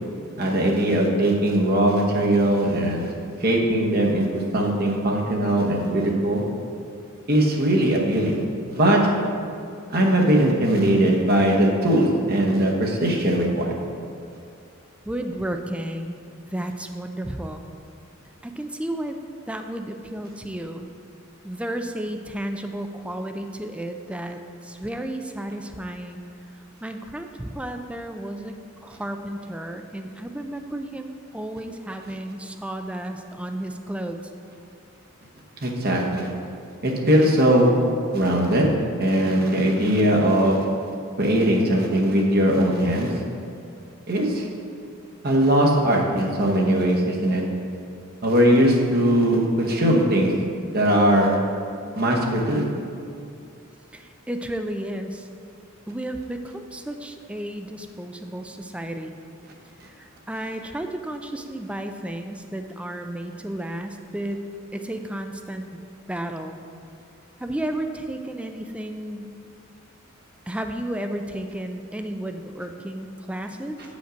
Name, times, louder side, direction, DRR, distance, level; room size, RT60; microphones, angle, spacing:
voice 1, 0.4-3.1 3.4-6.4 7.3-8.4 8.7-9.1 9.9-13.7 35.6-36.3 36.8-37.7 38.1-38.7 39.0-40.6 41.2-43.1 44.1-44.5 45.2-47.4 48.2-50.3 50.7-51.4 51.9-52.6, right 1 dB, 45° right, -1 dB, 1.0 m, -20 dB
voice 2, 15.0-16.2 16.5-17.6 18.4-19.2 19.5-20.9 21.4-26.2 26.8-34.2 53.9-55.3 55.9-59.2 59.8-64.4 64.7-65.8 66.1-66.6 67.4-69.3 70.5-73.8, right 1 dB, 5° right, 6 dB, 0.3 m, -32 dB
8.1 x 5.2 x 5.1 m, 2.4 s
head